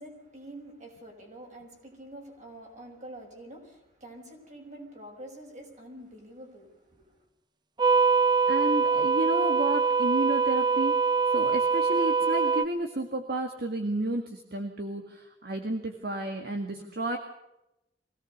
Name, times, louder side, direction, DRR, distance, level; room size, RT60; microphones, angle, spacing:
voice 1, 0.0-7.2, right 1 dB, 45° right, 5.8 m, -46 dB
sound 1, 7.8-12.6, right 5 dB, 25° right, 0.8 m, -24 dB
voice 2, 8.5-11.0 11.3-17.2, right 1 dB, 60° right, 1.9 m, -31 dB
24.0 x 17.5 x 6.6 m
head